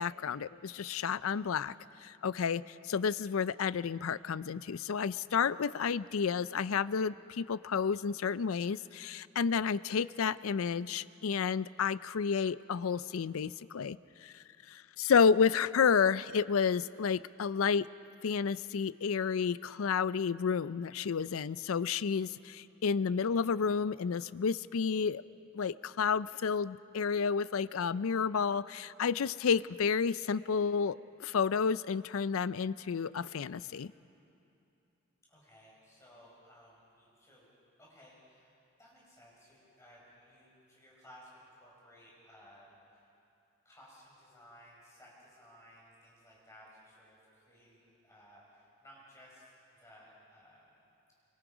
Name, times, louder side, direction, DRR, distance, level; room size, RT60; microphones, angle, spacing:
voice 1, 0.0-1.7 2.0-14.0 14.2-17.9 18.2-25.2 25.5-33.9, left 6 dB, 70° left, 17 dB, 0.4 m, -31 dB
voice 2, 35.3-37.5 37.8-43.1 43.6-50.8, equal, 15° left, -5 dB, 5.4 m, -58 dB
25.0 x 24.5 x 5.1 m, 2.7 s
head